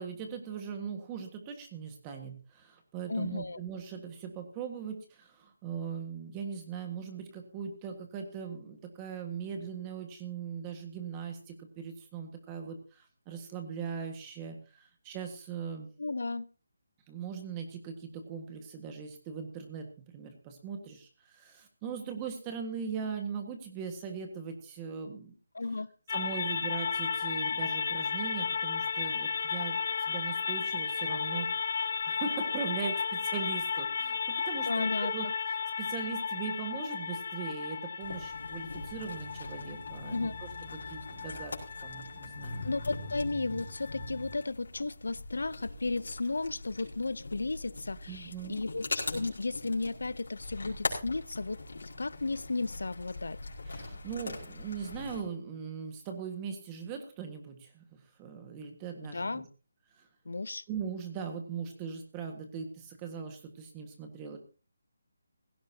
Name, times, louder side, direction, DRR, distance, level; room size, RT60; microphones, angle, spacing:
voice 1, 0.0-15.9 17.1-25.3 26.1-35.3 35.8-40.3 40.9-41.5 41.8-42.6 48.1-48.6 53.7-57.8 58.2-59.5 60.0-60.1 60.7-64.4, right 6 dB, 15° right, 5 dB, 1.6 m, -40 dB
voice 2, 3.1-3.6 16.0-16.5 25.5-25.9 34.7-35.1 40.1-40.3 42.6-53.4 59.0-59.5 60.3-60.6, left 3 dB, 85° left, 19 dB, 0.6 m, -34 dB
sound 1, 26.1-44.4, left 6 dB, 35° left, 0.9 m, -34 dB
sound 2, 38.0-55.2, left 2 dB, 65° left, 5.0 m, -41 dB
17.0 x 15.5 x 2.8 m, 0.35 s
hypercardioid pair, 175°, 0 cm